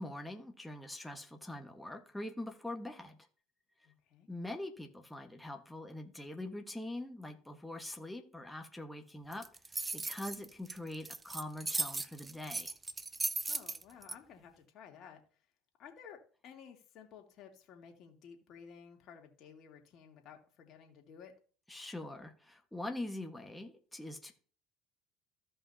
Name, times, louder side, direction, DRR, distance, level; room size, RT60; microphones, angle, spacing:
voice 1, 0.0-3.2 4.3-12.8 21.7-24.3, left 1 dB, 5° left, 1.5 m, -43 dB
voice 2, 3.8-4.3 13.5-15.2 15.8-21.3, left 7 dB, 55° left, 2.3 m, -54 dB
sound 1, 9.3-14.1, right 3 dB, 20° right, 0.5 m, -37 dB
15.0 x 5.4 x 2.8 m
supercardioid pair, 90°, 0 cm